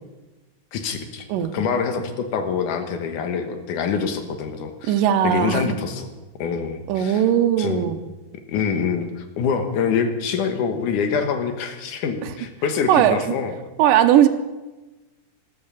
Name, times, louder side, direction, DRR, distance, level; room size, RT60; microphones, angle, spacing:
voice 1, 0.7-1.3 1.5-4.9 5.2-6.1 6.4-7.2 7.6-7.8 8.5-13.6, left 6 dB, 75° left, 7 dB, 2.8 m, -25 dB
voice 2, 4.9-5.8 6.9-8.0 12.2-12.3 12.9-13.4 13.8-14.3, right 10 dB, 85° right, 8 dB, 2.5 m, -18 dB
13.5 x 13.0 x 7.1 m, 1.1 s
omnidirectional pair, 3.8 m